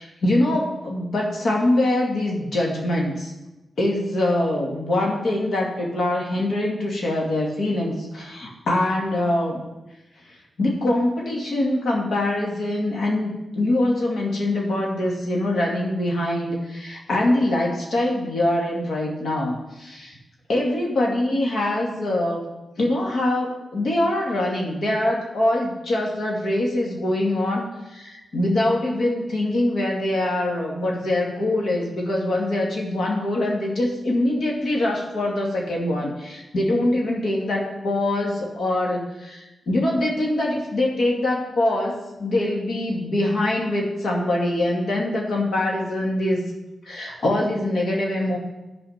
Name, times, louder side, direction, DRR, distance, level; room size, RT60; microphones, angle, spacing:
voice 1, 0.0-3.3 3.8-9.6 10.6-20.2 20.5-22.4 22.8-46.4 46.8-48.4, left 1 dB, 70° left, -2 dB, 2.2 m, -23 dB
10.5 x 4.8 x 5.7 m, 1.0 s
cardioid pair, 70°, 0 cm